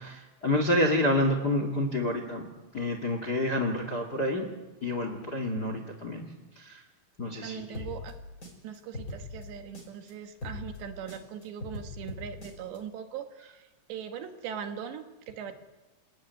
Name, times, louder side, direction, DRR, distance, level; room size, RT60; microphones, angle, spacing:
voice 1, 0.0-2.4 2.7-4.5 4.8-6.3 6.6-6.8 7.2-7.8, left 1 dB, 35° left, 6 dB, 1.7 m, -28 dB
voice 2, 7.4-8.1 8.6-15.5, right 8 dB, 70° right, 6 dB, 3.3 m, -40 dB
sound 1, 7.7-10.1 10.4-12.8, left 2 dB, 15° left, 5.6 m, -41 dB
27.5 x 19.0 x 9.5 m, 1.2 s
omnidirectional pair, 5.6 m